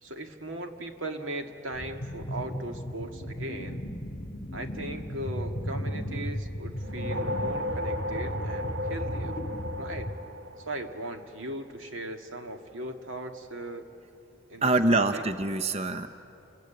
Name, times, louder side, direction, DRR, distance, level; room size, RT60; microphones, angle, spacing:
voice 1, 0.0-3.8 4.5-9.4 9.8-10.1 10.7-13.8 14.5-14.6 14.9-15.2, right 1 dB, 85° right, 5 dB, 1.9 m, -38 dB
sound 1, 1.7-10.2, equal, 40° left, 2.0 m, -35 dB
sound 2, 6.8-11.4, left 1 dB, 70° right, 1.1 m, -35 dB
voice 2, 14.6-16.1, right 2 dB, 30° right, 9 dB, 0.7 m, -25 dB
28.5 x 22.5 x 9.1 m, 2.8 s
head